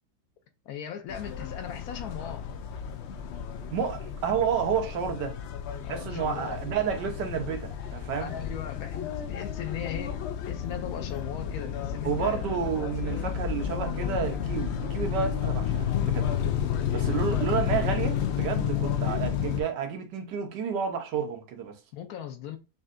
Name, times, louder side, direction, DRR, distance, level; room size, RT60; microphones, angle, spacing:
voice 1, 0.6-2.5 5.8-6.6 8.2-12.6 21.9-22.6, left 9 dB, 70° left, 1.0 m, -38 dB
sound 1, 1.1-19.6, left 9 dB, 90° left, 0.6 m, -31 dB
voice 2, 3.7-5.4 5.9-8.3 12.0-16.3 16.9-21.8, right 7 dB, 90° right, 1.5 m, -30 dB
5.4 x 2.7 x 2.5 m
omnidirectional pair, 1.8 m